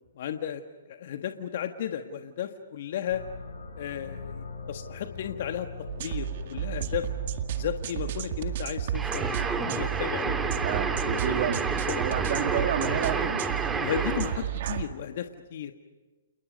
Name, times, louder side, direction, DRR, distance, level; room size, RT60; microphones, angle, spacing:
voice 1, 0.1-0.6 0.9-3.2 3.8-5.7 6.0-7.1 7.6-13.3 13.8-15.7, left 9 dB, 55° left, 6 dB, 1.5 m, -35 dB
sound 1, 3.0-15.0, left 4 dB, 75° left, 6.2 m, -43 dB
sound 2, 5.9-14.9, right 10 dB, 55° right, 1.9 m, -31 dB
sound 3, 8.9-14.5, right 4 dB, 10° right, 2.0 m, -30 dB
29.5 x 29.5 x 5.3 m, 1.3 s
hypercardioid pair, 130°, 0 cm